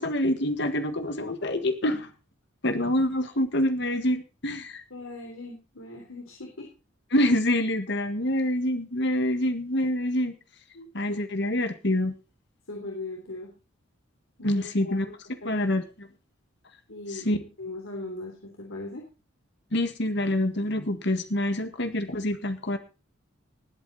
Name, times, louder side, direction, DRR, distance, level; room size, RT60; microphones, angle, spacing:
voice 1, 0.0-2.1 2.6-4.8 7.1-10.3 10.9-12.1 14.4-15.1 15.4-16.1 17.1-17.4 19.7-22.8, left 1 dB, 55° left, 8 dB, 1.7 m, -26 dB
voice 2, 4.9-6.7 10.7-11.2 12.7-13.5 14.4-15.1 15.4-15.7 16.9-19.1, left 2 dB, 90° left, 0 dB, 3.4 m, -39 dB
19.0 x 8.4 x 4.1 m, 0.32 s
head